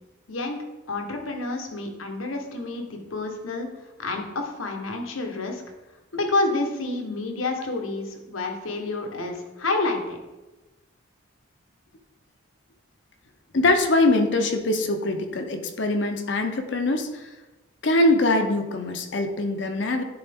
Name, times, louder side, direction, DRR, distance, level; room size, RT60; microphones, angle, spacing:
voice 1, 0.3-3.7 4.0-5.6 6.1-10.2, left 2 dB, 85° left, 3 dB, 1.1 m, -29 dB
voice 2, 13.5-17.3 17.8-20.0, left 2 dB, 60° left, 5 dB, 0.6 m, -23 dB
10.5 x 3.9 x 3.5 m, 1.1 s
head